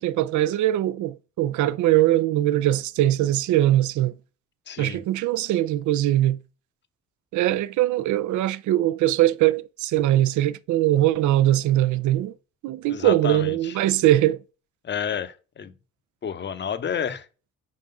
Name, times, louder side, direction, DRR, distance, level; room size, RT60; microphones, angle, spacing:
voice 1, 0.0-4.1 4.8-6.4 7.3-12.3 12.6-14.4, right 14 dB, 75° right, 0.5 m, -21 dB
voice 2, 4.7-5.0 12.9-13.8 14.8-15.7 16.2-17.3, left 8 dB, 35° left, 0.7 m, -30 dB
4.7 x 3.8 x 5.3 m
cardioid pair, 90°, 30 cm